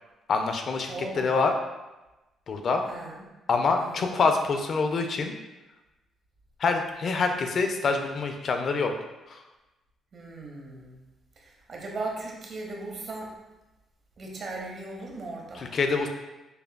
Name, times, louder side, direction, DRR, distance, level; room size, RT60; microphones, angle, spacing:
voice 1, 0.3-1.5 2.5-2.8 3.5-5.3 6.6-8.9 9.3-9.4 15.6-16.1, left 4 dB, 55° left, 5 dB, 0.5 m, -26 dB
voice 2, 0.9-1.3 2.9-3.2 3.8-4.1 10.1-11.0 11.4-13.3 14.2-15.7, right 2 dB, 50° right, -1 dB, 0.9 m, -38 dB
6.6 x 2.3 x 2.2 m, 1.0 s
cardioid pair, 90°, 0 cm